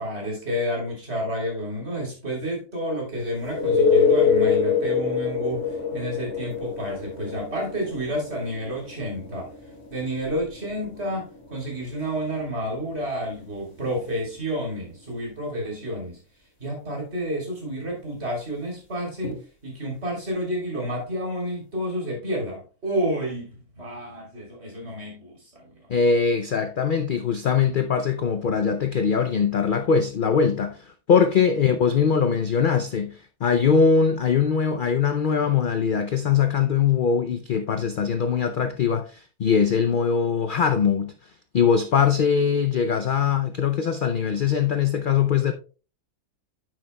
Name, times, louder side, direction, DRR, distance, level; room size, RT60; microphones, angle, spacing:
voice 1, 0.0-9.5 9.9-16.2 16.6-19.4 19.6-25.7, equal, 45° right, 3.7 m, -30 dB
sound 1, 3.4-15.0 19.2-19.3, left 6 dB, 45° left, 2.4 m, -26 dB
voice 2, 25.9-41.1 41.5-45.5, left 6 dB, 65° left, 0.5 m, -22 dB
9.4 x 7.6 x 2.2 m
omnidirectional pair, 1.6 m